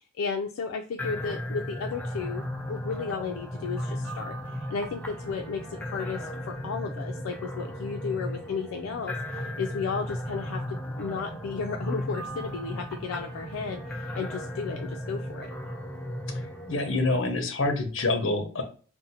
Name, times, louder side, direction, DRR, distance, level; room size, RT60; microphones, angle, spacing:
voice 1, 0.2-15.5, left 5 dB, 85° left, 3 dB, 0.3 m, -34 dB
sound 1, 1.0-17.2, equal, 5° left, 0.3 m, -35 dB
voice 2, 16.7-18.6, left 2 dB, 65° left, 5 dB, 0.7 m, -26 dB
2.6 x 2.0 x 4.0 m, 0.40 s
head